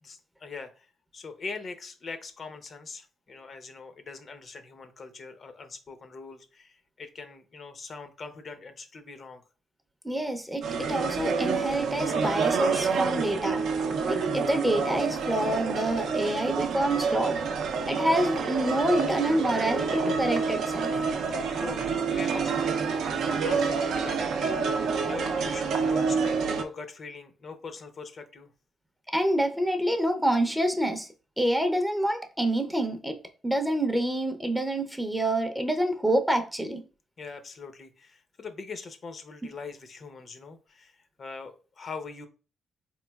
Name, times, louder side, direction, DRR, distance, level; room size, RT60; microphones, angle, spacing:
voice 1, 0.0-9.4 21.3-24.8 25.1-28.5 37.2-42.3, left 4 dB, 45° left, 0.5 m, -42 dB
voice 2, 10.0-13.6 14.1-17.4 17.9-20.9 29.1-31.1 31.4-33.2 33.4-36.8, right 1 dB, 5° right, 0.5 m, -27 dB
sound 1, 10.6-26.6, right 5 dB, 75° right, 0.5 m, -28 dB
3.8 x 3.0 x 2.3 m
cardioid pair, 90°, 0 cm